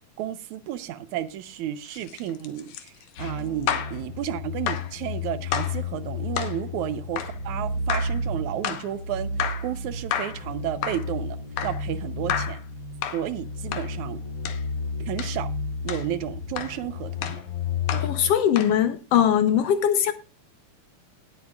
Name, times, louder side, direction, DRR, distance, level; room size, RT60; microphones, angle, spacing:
voice 1, 0.2-2.9 3.2-11.4 11.6-12.6 13.1-14.2 15.1-15.5 15.8-17.4 17.9-18.1, right 11 dB, 90° right, 2.3 m, -32 dB
sound 1, 1.9-4.0 4.7-4.9 5.5-5.8 6.3-6.6 7.2-7.4 7.9-8.2 8.6-8.9 9.4-9.7 10.1-10.4 10.8-11.1 11.6-11.8 12.3-12.6 13.0-13.3 13.7-13.9 14.4-14.6 15.2-15.4 15.9-16.1 16.6-16.8 17.2-17.4 17.9-18.1 18.6-18.8, left 9 dB, 90° left, 2.6 m, -31 dB
sound 2, 3.2-18.3, left 3 dB, 40° left, 1.5 m, -32 dB
voice 2, 18.0-20.1, left 9 dB, 70° left, 1.7 m, -21 dB
18.5 x 8.3 x 2.4 m
omnidirectional pair, 3.3 m